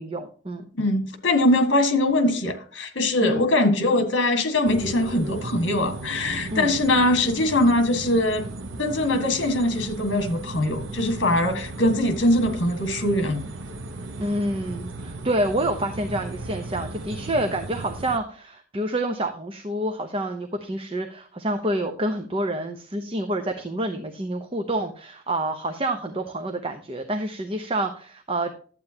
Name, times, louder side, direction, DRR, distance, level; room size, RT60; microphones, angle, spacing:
voice 1, 0.0-0.7 3.2-3.5 6.5-6.7 14.2-28.5, right 1 dB, 30° right, 6 dB, 0.8 m, -28 dB
voice 2, 0.8-8.5 8.8-13.4, left 1 dB, 65° left, 7 dB, 1.8 m, -22 dB
sound 1, 4.6-18.2, right 2 dB, 70° right, 0.9 m, -36 dB
11.5 x 8.4 x 2.8 m, 0.42 s
head